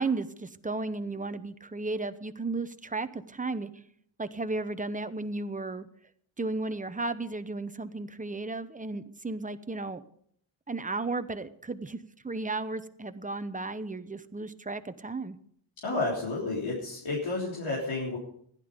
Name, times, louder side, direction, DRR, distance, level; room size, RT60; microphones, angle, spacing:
voice 1, 0.0-3.7 4.2-5.9 6.4-10.0 10.7-15.4, right 3 dB, 15° right, 11 dB, 0.8 m, -34 dB
voice 2, 15.8-18.2, left 3 dB, 75° left, -5 dB, 3.6 m, -31 dB
15.5 x 11.5 x 5.2 m, 0.67 s
wide cardioid pair, 115°, 47 cm